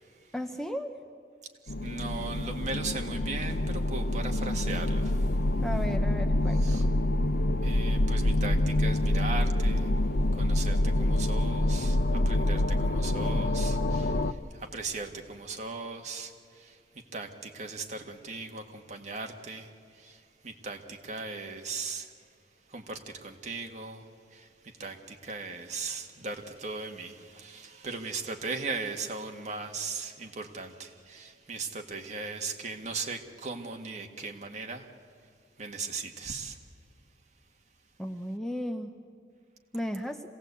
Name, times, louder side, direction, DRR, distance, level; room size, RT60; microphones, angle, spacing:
voice 1, 0.3-0.9 5.6-6.9 38.0-38.9 39.7-40.2, equal, ahead, 6 dB, 0.7 m, -35 dB
sound 1, 1.7-14.3, left 1 dB, 55° left, 0.7 m, -26 dB
voice 2, 1.8-5.3 6.6-6.8 7.6-9.9 10.3-16.8 17.1-22.1 22.7-24.0 24.3-34.9 35.6-36.6, right 4 dB, 40° right, 3 dB, 1.8 m, -38 dB
26.5 x 17.5 x 8.3 m, 2.4 s
head